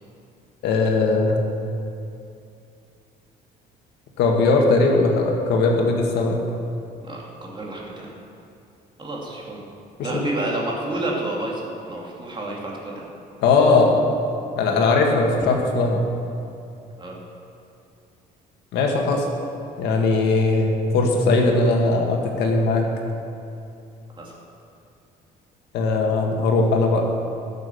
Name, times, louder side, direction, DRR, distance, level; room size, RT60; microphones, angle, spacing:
voice 1, 0.6-1.4 4.2-6.4 13.4-14.0 14.6-16.1 18.7-19.3 19.8-22.9 25.7-27.0, left 3 dB, 80° left, 1 dB, 1.7 m, -19 dB
voice 2, 7.0-8.1 9.0-9.6 10.0-13.1 17.0-17.2 24.2-24.4, right 2 dB, 30° right, -2 dB, 2.5 m, -30 dB
12.0 x 7.1 x 6.9 m, 2.6 s
cardioid pair, 110°, 17 cm